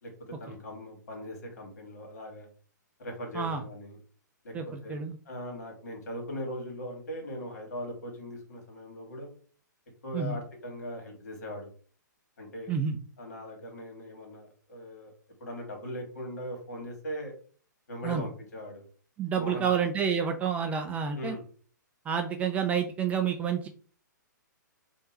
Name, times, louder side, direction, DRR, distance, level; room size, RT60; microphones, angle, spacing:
voice 1, 0.0-2.5 3.0-4.0 4.4-4.5 4.8-5.0 5.3-9.3 10.0-11.7 12.4-12.7 13.2-15.1 15.4-17.3 17.9-18.8 19.3-19.7 21.1-21.4, equal, 55° left, 1 dB, 2.0 m, -39 dB
voice 2, 4.5-5.2 10.1-10.4 12.7-13.0 18.0-18.3 19.2-21.4 22.1-23.7, right 7 dB, 15° right, 6 dB, 0.4 m, -29 dB
3.6 x 2.6 x 4.0 m, 0.42 s
figure-of-eight pair, 115°, 10 cm